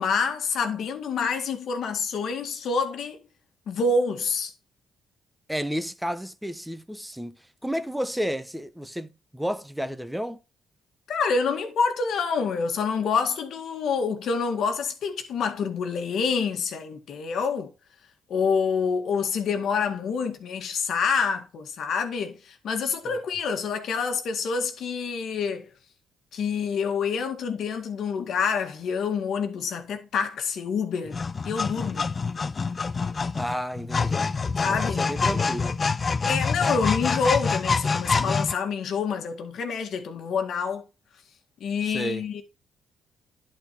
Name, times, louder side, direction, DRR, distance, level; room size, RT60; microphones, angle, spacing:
voice 1, 0.0-3.2 3.7-4.5 11.1-17.7 18.3-25.7 26.3-32.1 34.6-35.1 36.3-40.8 41.6-42.4, left 5 dB, 70° left, 1.8 m, -27 dB
voice 2, 5.5-7.4 7.6-10.4 33.3-34.4 34.7-35.8 41.9-42.2, equal, 5° right, 0.9 m, -31 dB
sound 1, 31.1-38.5, left 4 dB, 35° left, 0.6 m, -26 dB
11.0 x 4.4 x 4.4 m
cardioid pair, 90°, 0 cm